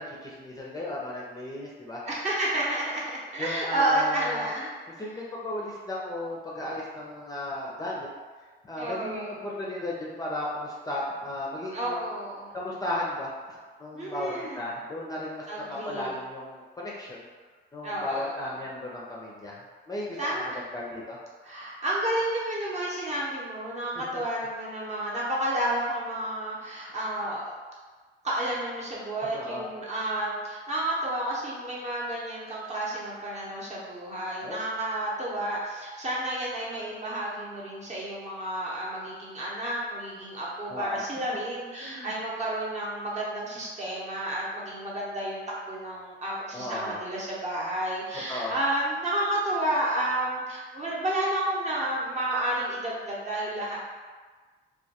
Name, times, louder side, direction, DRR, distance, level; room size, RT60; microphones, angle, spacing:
voice 1, 0.0-2.0 3.4-4.5 5.0-8.1 8.6-12.0 12.5-17.3 17.7-21.2 23.9-24.2 29.3-29.7 34.4-34.6 40.7-41.0 41.8-42.1 46.5-47.0 48.1-48.6, left 1 dB, 20° left, -5 dB, 0.4 m, -35 dB
voice 2, 2.0-4.7 8.8-9.4 11.7-12.5 13.9-14.7 15.5-16.2 17.8-18.5 20.2-20.6 21.4-27.5 28.2-53.8, right 1 dB, 35° right, -6 dB, 0.8 m, -31 dB
2.2 x 2.2 x 2.8 m, 1.4 s
cardioid pair, 90°, 20 cm